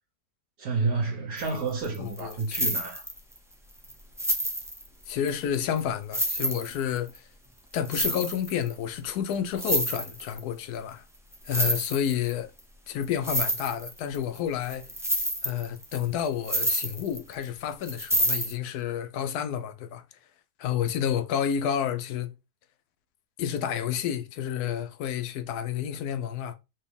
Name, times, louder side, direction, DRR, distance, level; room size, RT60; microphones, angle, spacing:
voice 1, 0.6-3.0, right 4 dB, 70° right, 1.4 m, -30 dB
sound 1, 1.4-1.6 1.8-3.4 3.8-3.9 4.2-5.3 5.8-5.9 6.1-7.2 7.8-8.7 9.1-9.2 9.3-10.4 11.3-12.3 12.6-12.7 13.0-14.4 14.7-17.4 17.8-18.5, right 1 dB, 5° right, 0.4 m, -28 dB
voice 2, 2.0-2.7 5.1-7.3 7.7-11.0 11.4-12.5 12.9-14.9 15.4-20.0 20.6-22.3 23.4-26.6, left 9 dB, 80° left, 1.2 m, -30 dB
4.3 x 3.0 x 3.5 m
omnidirectional pair, 1.6 m